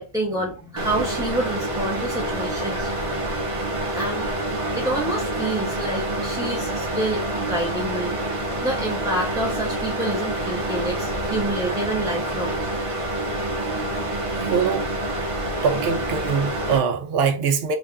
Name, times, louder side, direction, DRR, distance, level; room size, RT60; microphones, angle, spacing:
voice 1, 0.0-2.9 3.9-4.3 4.7-8.1 8.6-12.6, right 1 dB, 5° right, 0.4 m, -28 dB
sound 1, 0.8-16.8, right 1 dB, 35° right, 0.7 m, -27 dB
voice 2, 14.4-15.1 15.6-17.8, right 6 dB, 65° right, 0.8 m, -23 dB
3.4 x 2.3 x 3.7 m
omnidirectional pair, 1.1 m